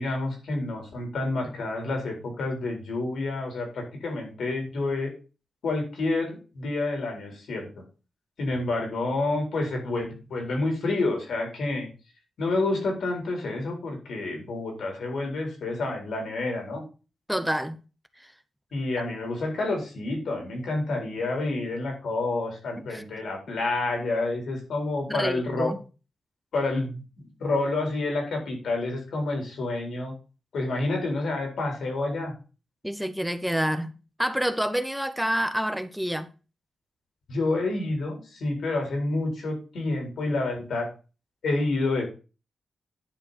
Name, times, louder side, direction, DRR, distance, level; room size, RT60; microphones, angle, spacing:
voice 1, 0.0-5.1 5.6-7.7 8.4-11.9 12.4-16.8 18.7-25.7 26.5-27.0 27.4-30.1 30.5-32.3 37.3-40.9 41.4-42.1, left 2 dB, 80° left, 4.4 m, -29 dB
voice 2, 17.3-17.8 18.2-18.3 22.9-23.0 25.1-25.8 32.8-36.3, equal, ahead, 0.7 m, -28 dB
10.5 x 4.5 x 5.8 m
wide cardioid pair, 140°, 0 cm